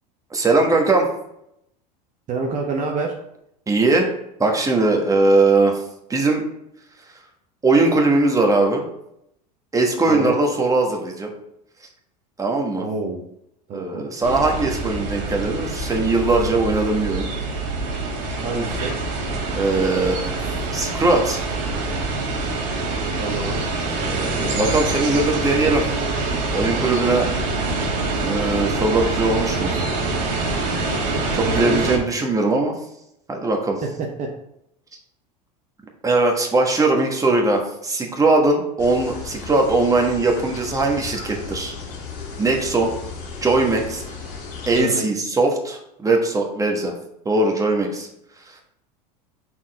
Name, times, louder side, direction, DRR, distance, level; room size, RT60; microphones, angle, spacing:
voice 1, 0.3-1.1 3.7-4.1 4.4-5.8 6.1-6.4 7.6-8.8 9.7-11.3 12.4-12.8 13.7-17.3 19.5-20.4 20.7-21.4 22.3-22.4 24.0-25.8 26.5-27.3 28.2-29.7 31.3-32.8 33.3-33.8 36.0-41.7 42.4-42.9 43.4-44.0 44.7-46.9 47.2-48.1 48.5-48.6, right 2 dB, 15° right, 1 dB, 1.4 m, -20 dB
voice 2, 2.3-3.1 10.1-10.3 12.8-13.2 13.7-14.1 18.4-19.0 23.2-23.6 31.4-32.1 33.8-34.3 44.7-45.1, right 3 dB, 40° right, 0 dB, 1.0 m, -27 dB
sound 1, 14.2-32.0, right 3 dB, 60° right, 1.7 m, -25 dB
sound 2, 38.8-44.8, left 4 dB, 65° left, 2.0 m, -35 dB
5.9 x 4.4 x 4.2 m, 0.79 s
hypercardioid pair, 90°, 21 cm